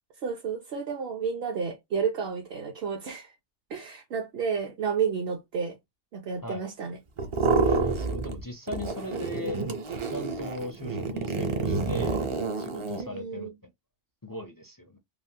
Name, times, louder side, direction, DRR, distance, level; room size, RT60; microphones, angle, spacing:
voice 1, 0.2-3.4 3.7-5.8 6.1-7.0 13.0-13.5, right 6 dB, 60° right, 0.9 m, -31 dB
sound 1, 7.2-8.4 8.7-13.0, right 4 dB, 45° right, 0.4 m, -28 dB
voice 2, 7.6-9.6 10.1-12.2 12.6-13.5 14.2-15.0, left 1 dB, 35° left, 0.3 m, -38 dB
3.2 x 2.1 x 2.7 m
omnidirectional pair, 1.2 m